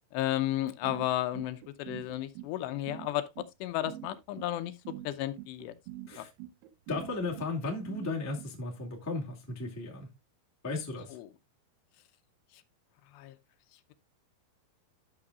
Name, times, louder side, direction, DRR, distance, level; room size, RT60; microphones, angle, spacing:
voice 1, 0.1-3.3 3.6-4.7 5.0-5.7 6.2-6.3 11.1-11.3 13.1-13.4, left 14 dB, 85° left, 2.9 m, -33 dB
sound 1, 0.8-8.5, right 14 dB, 75° right, 2.3 m, -45 dB
voice 2, 6.9-10.1 10.6-11.2, left 3 dB, 15° left, 0.6 m, -35 dB
12.5 x 6.7 x 2.4 m
omnidirectional pair, 4.9 m